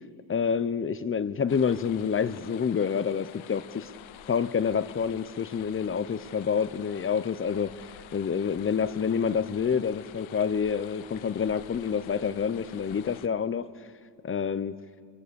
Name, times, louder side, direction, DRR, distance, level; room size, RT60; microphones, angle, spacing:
voice 1, 0.3-3.9 4.3-13.7 14.2-14.8, left 6 dB, 25° left, 0.7 m, -28 dB
sound 1, 1.5-13.3, left 12 dB, 70° left, 0.9 m, -48 dB
25.5 x 22.5 x 6.9 m
cardioid pair, 115°, 50 cm